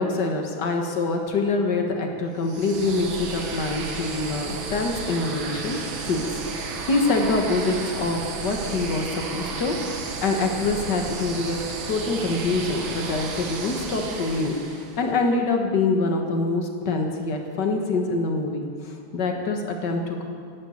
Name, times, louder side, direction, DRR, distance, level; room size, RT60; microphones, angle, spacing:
voice 1, 0.0-5.8 6.0-11.6 11.9-20.2, left 3 dB, 55° left, 3 dB, 2.0 m, -25 dB
sound 1, 2.4-15.1, right 4 dB, 70° right, 2.0 m, -33 dB
11.5 x 11.0 x 8.4 m, 2.2 s
omnidirectional pair, 2.3 m